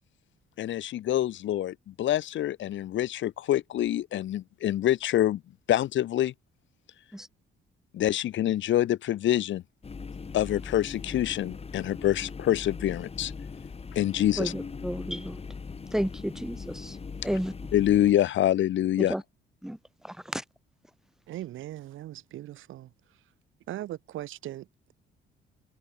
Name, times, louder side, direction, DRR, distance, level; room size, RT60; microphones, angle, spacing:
voice 1, 0.6-5.4 5.7-6.3 7.9-9.6 10.3-13.3 13.9-14.5 17.7-19.1, left 12 dB, 70° left, 1.3 m, -26 dB
sound 1, 9.8-18.1, left 5 dB, 30° left, 1.8 m, -40 dB
voice 2, 14.4-15.4 15.9-17.0 17.2-17.5 19.0-19.2 19.6-19.8 20.0-20.4, equal, ahead, 3.6 m, -32 dB
voice 3, 21.3-22.9 23.7-24.9, right 14 dB, 80° right, 4.3 m, -39 dB
cardioid pair, 90°, 20 cm